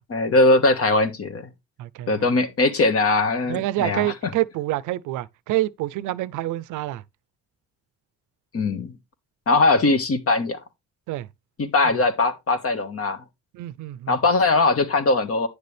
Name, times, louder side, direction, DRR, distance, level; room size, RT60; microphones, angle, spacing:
voice 1, 0.1-1.5 2.1-4.1 8.5-8.9 9.5-10.6 11.6-13.2 14.1-15.5, left 3 dB, 50° left, 1.6 m, -20 dB
voice 2, 1.8-2.2 3.5-7.0 11.1-11.3 11.8-12.0 13.5-14.1, right 15 dB, 85° right, 0.5 m, -27 dB
9.8 x 6.7 x 3.3 m
cardioid pair, 90°, 30 cm